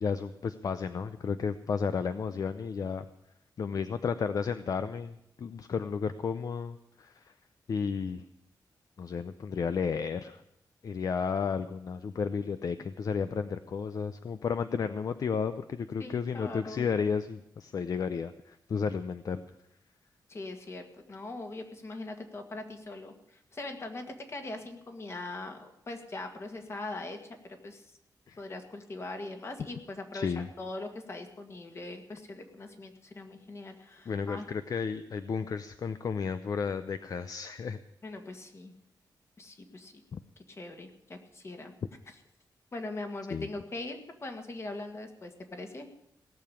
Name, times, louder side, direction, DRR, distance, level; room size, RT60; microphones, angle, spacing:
voice 1, 0.0-3.0 3.6-7.3 7.7-8.2 9.0-10.4 10.8-19.4 28.3-28.4 30.1-30.5 34.1-37.8 40.1-40.2 43.3-43.5, left 6 dB, 55° left, 11 dB, 0.6 m, -32 dB
voice 2, 16.0-16.9 20.3-27.2 27.4-27.8 28.4-34.5 38.0-38.7 39.4-39.9 40.5-41.7 42.7-45.9, left 2 dB, 35° left, 5 dB, 1.9 m, -41 dB
17.5 x 7.0 x 10.0 m, 0.82 s
wide cardioid pair, 145°, 7 cm